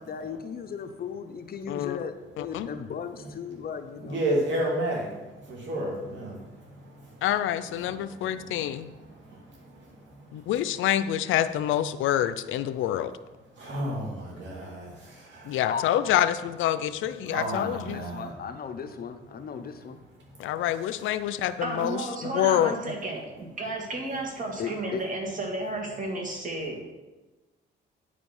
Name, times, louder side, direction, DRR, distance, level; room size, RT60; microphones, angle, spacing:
voice 1, 0.0-4.2 15.6-15.9 16.2-16.3 17.5-20.0 24.6-25.0, left 7 dB, 50° left, 7 dB, 0.8 m, -36 dB
voice 2, 1.7-2.0 2.4-2.7 7.2-8.9 10.3-13.1 15.4-18.0 20.4-22.8, left 11 dB, 80° left, 13 dB, 0.5 m, -27 dB
voice 3, 4.0-7.2 8.0-8.7 9.0-10.5 13.6-15.6 17.3-18.3, right 1 dB, 65° right, -2 dB, 2.8 m, -33 dB
voice 4, 21.6-26.8, right 2 dB, 40° right, -1 dB, 2.5 m, -33 dB
9.3 x 5.1 x 5.4 m, 1.2 s
cardioid pair, 90°, 20 cm